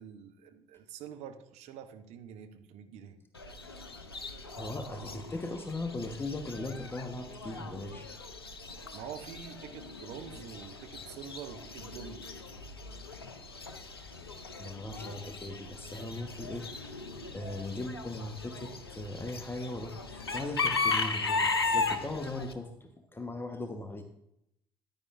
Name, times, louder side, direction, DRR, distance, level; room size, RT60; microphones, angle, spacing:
voice 1, 0.0-3.2 7.6-7.7 8.9-12.2, right 8 dB, 60° right, 6 dB, 0.9 m, -46 dB
Chicken rooster / Bird, 3.4-22.5, left 4 dB, 85° left, 0.5 m, -37 dB
voice 2, 4.5-8.1 14.6-16.7 17.3-24.0, left 2 dB, 20° left, 5 dB, 1.1 m, -39 dB
14.0 x 10.0 x 2.5 m, 0.76 s
figure-of-eight pair, 45°, 12 cm